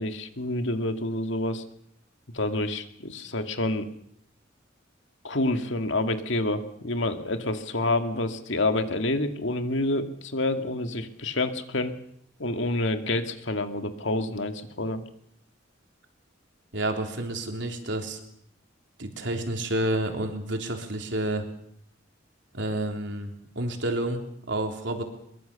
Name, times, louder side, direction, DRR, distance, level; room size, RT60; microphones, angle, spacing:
voice 1, 0.0-1.6 2.3-3.9 5.2-11.9 12.4-15.0, left 2 dB, 65° left, 7 dB, 2.1 m, -28 dB
voice 2, 16.7-18.2 19.0-21.5 22.5-25.0, right 1 dB, 60° right, 4 dB, 3.7 m, -29 dB
23.0 x 23.0 x 7.0 m, 0.70 s
head